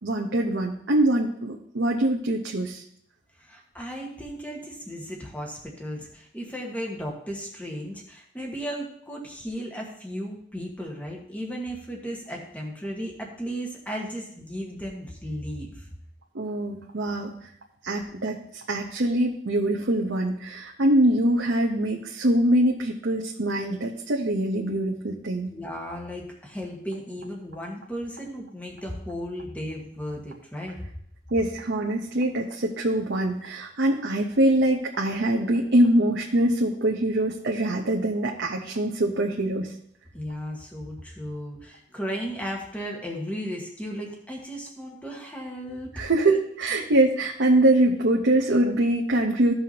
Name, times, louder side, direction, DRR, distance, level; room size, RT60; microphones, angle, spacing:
voice 1, 0.0-2.8 16.3-17.5 17.8-25.5 31.3-39.7 45.9-49.5, right 1 dB, 90° right, 0 dB, 0.9 m, -23 dB
voice 2, 3.4-15.9 25.5-30.8 40.1-46.1, equal, 10° left, -1 dB, 1.5 m, -35 dB
15.0 x 5.6 x 2.9 m, 0.67 s
head